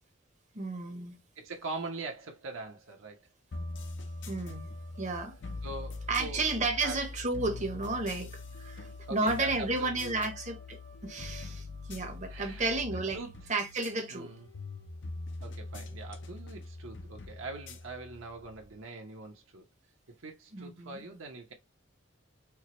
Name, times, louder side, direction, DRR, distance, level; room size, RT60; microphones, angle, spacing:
voice 1, 0.5-1.2 4.3-4.7 5.0-5.3 6.1-8.3 8.6-13.2 13.5-14.3 20.5-21.0, right 3 dB, 35° right, 0.8 m, -32 dB
voice 2, 1.4-3.2 5.6-6.4 6.7-7.0 9.1-10.3 11.9-12.0 12.3-13.5 14.1-14.5 15.4-19.6 20.2-21.5, right 3 dB, 70° right, 0.9 m, -42 dB
sound 1, 3.5-18.8, left 3 dB, 55° left, 0.5 m, -43 dB
4.6 x 2.2 x 2.9 m
head